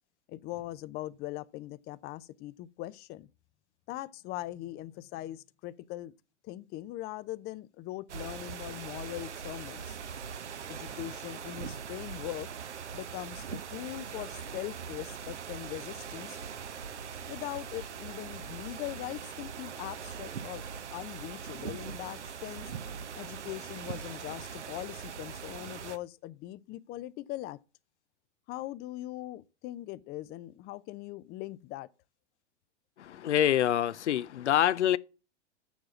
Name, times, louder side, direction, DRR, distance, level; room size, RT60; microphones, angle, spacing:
voice 1, 0.3-3.3 3.9-6.1 6.4-10.0 10.7-12.5 12.9-16.4 17.3-22.7 23.1-27.6 28.5-31.9, left 15 dB, 30° left, 0.5 m, -41 dB
sound 1, 8.1-26.0, right 7 dB, 80° right, 0.9 m, -41 dB
voice 2, 33.0-35.0, left 11 dB, 85° left, 0.5 m, -26 dB
7.1 x 6.1 x 7.2 m
hypercardioid pair, 100°, 34 cm